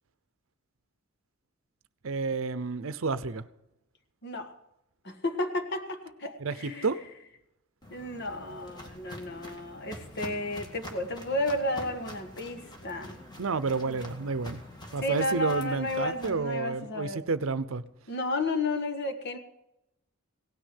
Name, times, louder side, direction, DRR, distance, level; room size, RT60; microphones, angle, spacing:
voice 1, 2.0-3.5 6.4-7.0 13.4-14.6 14.9-17.8, right 4 dB, 70° right, 15 dB, 0.7 m, -30 dB
voice 2, 4.2-4.5 5.0-6.9 7.9-13.2 13.7-14.0 15.0-17.2 18.1-19.4, left 1 dB, 55° left, 7 dB, 1.5 m, -32 dB
Walk footsteps, 7.8-16.3, left 1 dB, 20° left, 2.0 m, -46 dB
17.5 x 6.4 x 10.0 m, 0.86 s
head